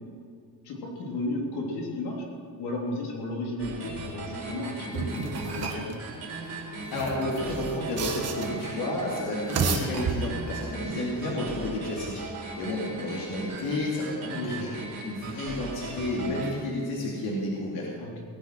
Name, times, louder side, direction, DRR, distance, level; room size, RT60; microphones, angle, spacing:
voice 1, 0.6-2.2 2.6-5.9 14.3-14.7 18.0-18.1, left 2 dB, 85° left, -1 dB, 3.5 m, -33 dB
sound 1, 3.6-16.5, right 3 dB, 55° right, 3.7 m, -38 dB
sound 2, 4.9-5.9 6.8-8.7 9.3-10.6, right 5 dB, 40° right, 1.6 m, -31 dB
voice 2, 6.9-12.2 12.6-14.7 15.0-17.9, left 1 dB, 70° left, -4 dB, 2.9 m, -31 dB
19.0 x 9.8 x 6.2 m, 2.3 s
cardioid pair, 175°, 39 cm